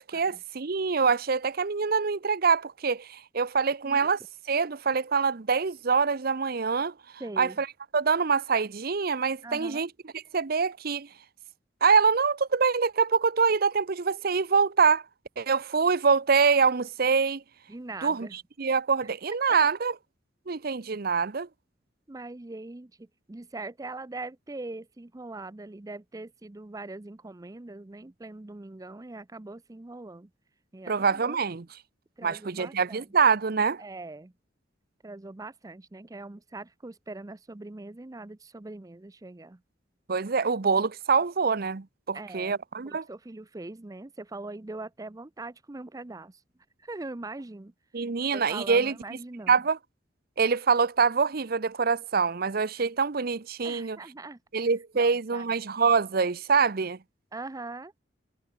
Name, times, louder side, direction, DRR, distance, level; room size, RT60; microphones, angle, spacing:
voice 1, 0.0-4.2 4.5-6.9 7.4-7.7 7.9-9.9 10.3-11.1 11.8-15.0 15.4-17.4 18.0-18.3 18.6-19.9 20.5-21.5 30.9-31.6 32.2-33.8 40.1-43.0 47.9-49.0 49.5-49.8 50.4-54.0 54.5-57.0, right 5 dB, 55° right, 0.7 m, -25 dB
voice 2, 7.2-7.6 9.4-9.8 17.7-18.4 19.0-19.1 19.5-19.6 22.1-30.3 30.7-31.6 32.2-33.1 33.8-34.3 35.0-39.6 42.1-46.4 46.8-48.1 48.3-49.6 53.6-54.4 55.0-55.5 57.3-57.9, right 2 dB, 20° right, 0.5 m, -42 dB
head